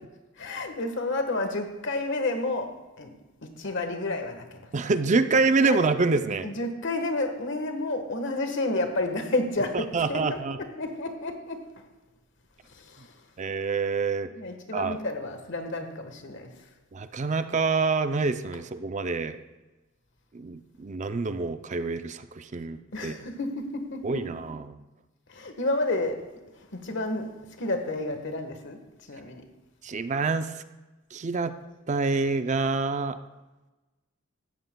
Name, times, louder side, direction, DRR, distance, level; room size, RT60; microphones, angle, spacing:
voice 1, 0.4-2.7 3.0-3.1 3.6-4.9 5.6-5.8 6.4-11.9 12.7-13.1 14.2-16.5 22.9-24.2 25.3-26.2 26.5-27.3 27.6-28.8 29.1-29.4, left 2 dB, 60° left, 6 dB, 1.4 m, -30 dB
voice 2, 4.7-6.5 9.9-10.6 13.4-14.3 14.7-15.0 16.9-19.4 20.3-23.1 24.0-24.8 29.8-30.5 31.1-31.5 31.9-33.2, right 4 dB, 35° right, 10 dB, 0.5 m, -26 dB
16.5 x 13.5 x 2.3 m, 1.1 s
head